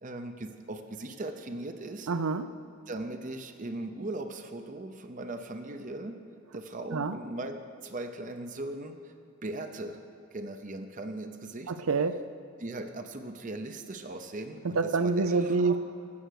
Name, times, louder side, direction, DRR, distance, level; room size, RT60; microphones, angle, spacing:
voice 1, 0.0-2.1 2.9-6.2 6.5-9.1 9.4-10.0 10.3-11.7 12.6-15.8, right 2 dB, 40° right, 7 dB, 0.7 m, -39 dB
voice 2, 2.1-2.5 6.9-7.2 11.7-12.2 14.8-15.8, right 4 dB, 85° right, 12 dB, 0.6 m, -26 dB
13.0 x 7.8 x 6.5 m, 2.6 s
head